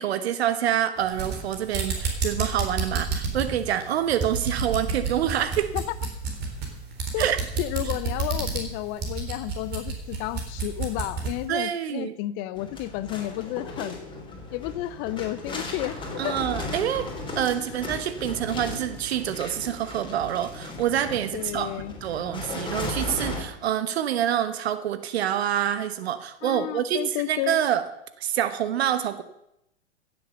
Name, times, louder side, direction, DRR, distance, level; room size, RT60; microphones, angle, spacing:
voice 1, 0.0-5.7 7.2-7.4 11.5-12.1 16.2-17.1 17.4-27.8 28.2-29.2, right 10 dB, 65° right, 12 dB, 1.1 m, -26 dB
sound 1, 1.0-11.4, right 4 dB, 30° right, 4.0 m, -30 dB
voice 2, 7.6-14.0 14.5-16.4 17.6-17.7 21.3-21.9 26.4-27.6, left 15 dB, 30° left, 16 dB, 0.4 m, -32 dB
sound 2, 12.5-23.4, left 2 dB, 15° left, 3.7 m, -36 dB
15.5 x 7.8 x 6.7 m, 0.82 s
hypercardioid pair, 110°, 34 cm